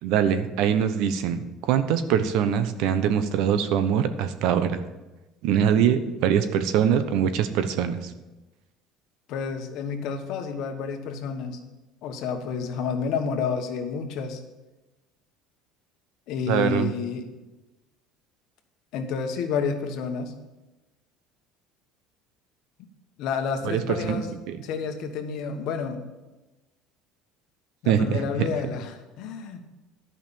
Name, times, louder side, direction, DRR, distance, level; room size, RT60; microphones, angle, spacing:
voice 1, 0.0-4.8 5.4-8.1 16.5-16.9 23.6-24.2 24.5-24.6 27.9-28.5, right 8 dB, 70° right, 11 dB, 0.9 m, -23 dB
voice 2, 9.3-11.6 12.0-14.4 16.3-17.3 18.9-20.3 23.2-24.3 24.6-26.0 27.8-29.6, left 5 dB, 65° left, 5 dB, 1.4 m, -30 dB
11.5 x 5.6 x 7.0 m, 1.1 s
cardioid pair, 130°, 0 cm